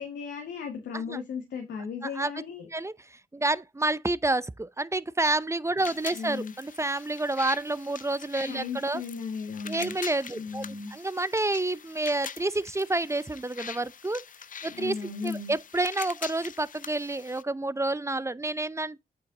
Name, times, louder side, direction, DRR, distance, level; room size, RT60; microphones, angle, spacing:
voice 1, 0.0-2.7 6.1-6.5 8.5-9.9 10.3-10.9 14.7-15.5, left 5 dB, 90° left, 1.4 m, -36 dB
voice 2, 3.3-9.0 9.7-10.6 10.9-14.2 14.6-15.0 15.2-19.0, right 2 dB, 15° right, 0.6 m, -29 dB
sound 1, 5.8-17.4, left 7 dB, 50° left, 0.5 m, -44 dB
8.5 x 4.3 x 3.7 m
supercardioid pair, 45°, 17 cm